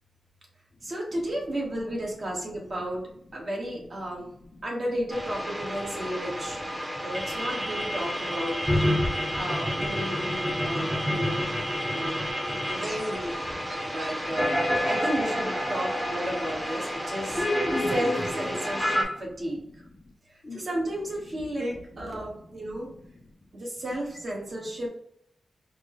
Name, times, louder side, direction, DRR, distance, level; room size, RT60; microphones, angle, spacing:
voice 1, 0.8-3.0 3.3-4.3 4.6-6.6 7.0-8.6 9.3-11.4 11.9-12.2 12.7-13.4 13.9-19.6 20.3-22.9 23.5-24.9, right 1 dB, 45° right, -2 dB, 1.2 m, -33 dB
voice 2, 4.1-4.7 5.8-6.7 7.3-8.7 12.1-12.6 13.5-13.7 14.1-14.9 15.6-15.7 16.0-16.2 17.1-17.2 17.5-17.9 18.6-19.2 19.7-20.1 20.4-20.7 21.9-23.4, left 2 dB, 40° left, 4 dB, 0.5 m, -51 dB
sound 1, 5.1-19.0, equal, 5° right, 0.8 m, -29 dB
4.4 x 2.1 x 2.9 m, 0.69 s
wide cardioid pair, 115°, 0 cm